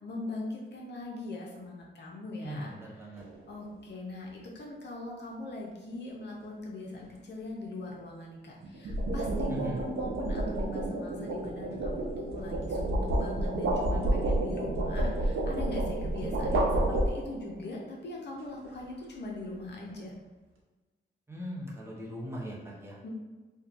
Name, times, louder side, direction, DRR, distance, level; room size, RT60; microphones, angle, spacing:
voice 1, 0.0-2.7 3.5-20.1 23.0-23.1, left 2 dB, 60° left, -2 dB, 0.6 m, -41 dB
voice 2, 2.4-3.2 9.5-9.8 21.3-23.0, equal, 10° right, -5 dB, 0.7 m, -39 dB
sound 1, 3.2-3.5 8.6-17.5, right 1 dB, 85° right, 0.5 m, -30 dB
2.7 x 2.2 x 2.4 m, 1.2 s
cardioid pair, 70°, 20 cm